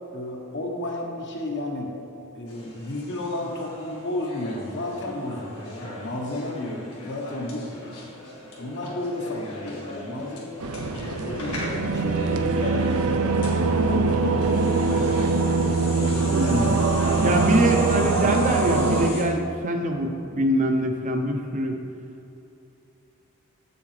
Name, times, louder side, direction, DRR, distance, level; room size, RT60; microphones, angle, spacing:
voice 1, 0.1-1.9 2.3-7.8 8.6-10.5 11.0-14.5, left 1 dB, 55° left, 0 dB, 1.1 m, -33 dB
sound 1, 2.5-19.2, left 2 dB, 75° left, 1.7 m, -39 dB
sound 2, 10.6-19.1, right 3 dB, 80° right, 0.5 m, -23 dB
voice 2, 16.3-16.8 17.2-21.8, right 1 dB, 35° right, 4 dB, 0.6 m, -24 dB
7.6 x 7.0 x 3.2 m, 2.9 s
head